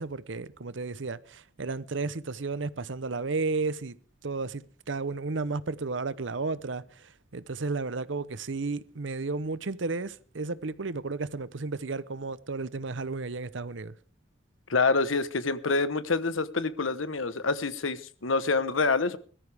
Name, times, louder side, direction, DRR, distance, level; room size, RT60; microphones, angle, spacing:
voice 1, 0.0-4.0 4.2-14.0, right 3 dB, 70° right, 0.8 m, -33 dB
voice 2, 14.7-19.2, left 3 dB, 90° left, 1.1 m, -27 dB
21.0 x 13.5 x 3.5 m
head